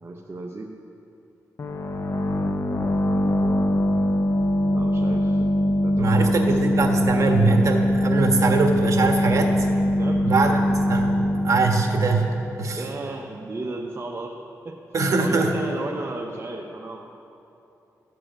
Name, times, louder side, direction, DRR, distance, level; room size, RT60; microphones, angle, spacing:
voice 1, 0.0-0.7 4.7-5.5 5.8-6.6 10.0-10.3 12.7-14.8 15.2-17.1, right 2 dB, 40° right, 0 dB, 0.8 m, -34 dB
sound 1, 1.6-13.1, left 1 dB, 50° left, 0.8 m, -22 dB
voice 2, 6.0-9.7 10.2-10.5 10.9-12.3 12.6-12.8 14.9-15.5, right 3 dB, 55° right, 2 dB, 1.5 m, -22 dB
14.0 x 4.8 x 9.0 m, 2.9 s
cardioid pair, 75°, 6 cm